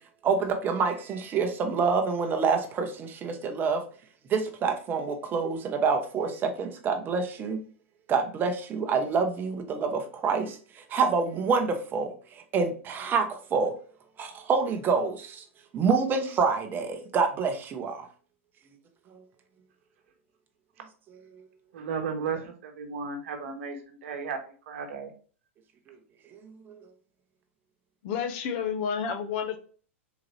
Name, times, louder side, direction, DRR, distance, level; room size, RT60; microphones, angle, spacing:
voice 1, 0.2-3.8 4.3-7.6 8.1-13.8 14.2-15.5 15.7-18.1 19.1-19.2 21.3-21.5 25.9-26.0 26.3-26.9, right 5 dB, 25° right, 0.8 m, -27 dB
voice 2, 21.7-24.4 24.7-25.1, right 5 dB, 65° right, 1.0 m, -34 dB
voice 3, 28.0-29.6, left 7 dB, 50° left, 0.7 m, -30 dB
3.9 x 2.9 x 3.1 m
hypercardioid pair, 115°, 7 cm